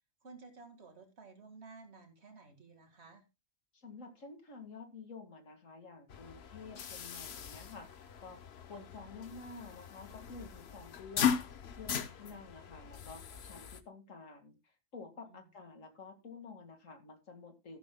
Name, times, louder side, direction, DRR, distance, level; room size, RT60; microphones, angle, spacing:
voice 1, 0.2-3.2 12.2-12.4 15.2-15.5, right 4 dB, 55° right, 5 dB, 2.3 m, -54 dB
voice 2, 3.7-7.9 8.2-11.4 11.8-17.8, left 4 dB, 80° left, 6 dB, 2.3 m, -50 dB
sound 1, 6.1-13.8, left 8 dB, 55° left, 1.1 m, -38 dB
14.0 x 11.5 x 2.2 m, 0.25 s
omnidirectional pair, 1.3 m